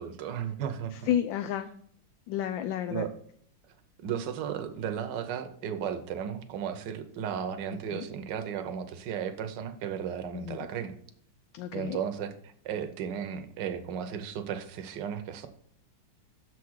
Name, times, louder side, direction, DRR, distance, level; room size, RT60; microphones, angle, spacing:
voice 1, 0.0-1.1 2.9-3.1 4.0-11.0 11.7-15.5, right 8 dB, 70° right, 8 dB, 1.4 m, -35 dB
voice 2, 0.9-1.7 2.3-3.1 7.7-8.0 10.3-10.7 11.5-12.0, left 10 dB, 80° left, 8 dB, 1.3 m, -31 dB
6.7 x 4.8 x 6.2 m, 0.62 s
omnidirectional pair, 2.1 m